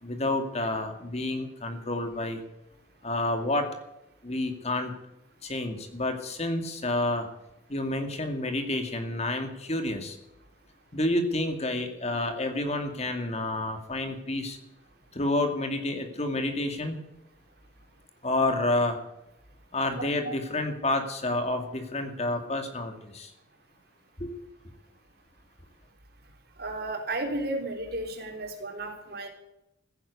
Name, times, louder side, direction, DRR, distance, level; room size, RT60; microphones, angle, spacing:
voice 1, 0.0-2.4 3.0-3.7 4.2-4.9 5.4-7.3 7.7-10.2 10.9-14.6 15.1-17.0 18.2-19.0 19.7-23.3 24.2-24.3, left 2 dB, 35° left, 6 dB, 2.3 m, -29 dB
voice 2, 20.0-20.4 26.6-29.3, right 2 dB, 55° right, 3 dB, 3.6 m, -33 dB
15.0 x 10.5 x 8.3 m, 0.85 s
head